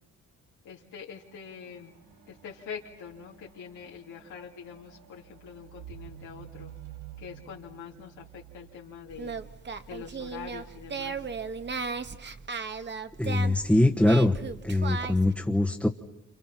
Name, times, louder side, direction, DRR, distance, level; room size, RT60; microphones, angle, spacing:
voice 1, 0.6-1.9 2.3-6.7 7.2-9.4 9.9-11.3, left 7 dB, 90° left, -2 dB, 3.2 m, -44 dB
sound 1, 1.1-10.6 11.4-11.6, right 11 dB, 70° right, 7.5 m, -51 dB
Singing, 9.1-15.3, right 5 dB, 35° right, 1.4 m, -36 dB
voice 2, 13.2-14.3 14.6-15.9, left 1 dB, 5° left, 1 dB, 1.3 m, -23 dB
28.5 x 28.5 x 5.9 m, 0.82 s
cardioid pair, 90°, 30 cm